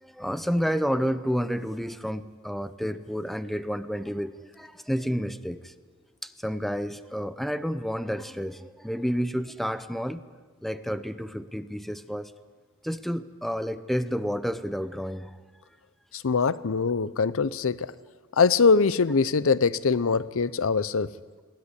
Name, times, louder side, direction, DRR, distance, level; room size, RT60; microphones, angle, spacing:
voice 1, 0.0-5.7 6.2-10.2 10.6-12.3 12.8-15.4, equal, ahead, 12 dB, 0.7 m, -30 dB
voice 2, 16.2-17.9 18.4-21.1, left 5 dB, 65° left, 17 dB, 0.6 m, -22 dB
21.5 x 17.0 x 9.8 m, 1.4 s
head